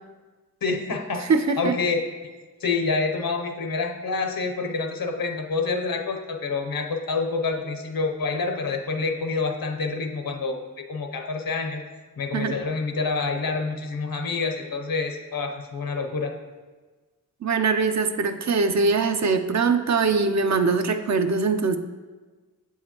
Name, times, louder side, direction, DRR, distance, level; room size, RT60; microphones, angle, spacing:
voice 1, 0.6-2.0 2.6-10.6 10.9-11.8 12.2-16.3, left 4 dB, 80° left, 4 dB, 0.7 m, -27 dB
voice 2, 1.2-1.8 12.3-12.6 17.4-21.8, right 4 dB, 55° right, 8 dB, 0.5 m, -22 dB
7.8 x 4.7 x 2.9 m, 1.3 s
wide cardioid pair, 55°, 35 cm